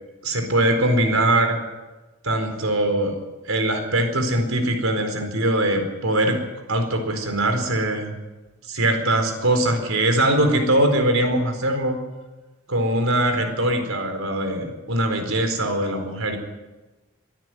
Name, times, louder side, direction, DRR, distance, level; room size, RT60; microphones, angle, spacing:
voice 1, 0.2-1.6 2.2-3.2 3.5-6.4 6.7-8.2 8.7-12.0 12.7-16.4, right 1 dB, 85° right, 6 dB, 4.4 m, -22 dB
23.0 x 13.0 x 9.4 m, 1.1 s
head